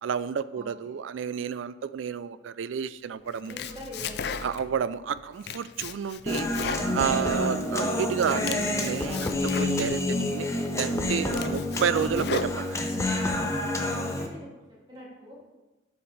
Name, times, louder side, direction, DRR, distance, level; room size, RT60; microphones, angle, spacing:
voice 1, 0.0-3.6 4.4-6.5 6.9-10.5 10.8-12.8, right 7 dB, 80° right, 15 dB, 0.4 m, -30 dB
voice 2, 0.5-0.9 3.4-4.5 13.7-15.4, equal, 25° right, -6 dB, 2.5 m, -44 dB
Domestic sounds home sounds, 3.3-4.8 5.2-7.7 8.1-10.1 10.6-10.7 11.1-13.0, left 6 dB, 55° left, 0.4 m, -36 dB
Human voice, 6.3-14.3, left 1 dB, 15° left, 0.6 m, -28 dB
12.5 x 5.7 x 3.3 m, 1.1 s
head